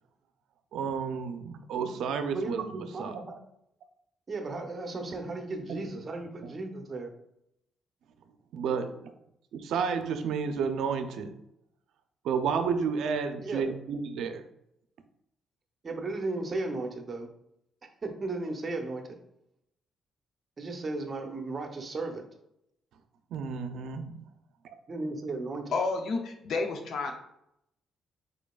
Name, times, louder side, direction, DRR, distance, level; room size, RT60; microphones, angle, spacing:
voice 1, 0.7-2.6 3.0-3.2 5.7-5.8 6.4-6.5 8.5-9.1 9.5-11.3 12.2-14.4 23.3-24.1, right 6 dB, 80° right, 8 dB, 0.5 m, -31 dB
voice 2, 2.3-3.4 4.3-7.1 13.4-13.8 15.8-17.3 18.0-19.1 20.6-22.2 24.9-25.7, right 2 dB, 35° right, 4 dB, 0.8 m, -35 dB
voice 3, 25.7-27.1, left 3 dB, 65° left, 4 dB, 0.6 m, -30 dB
5.0 x 4.4 x 2.4 m, 0.78 s
cardioid pair, 90°, 0 cm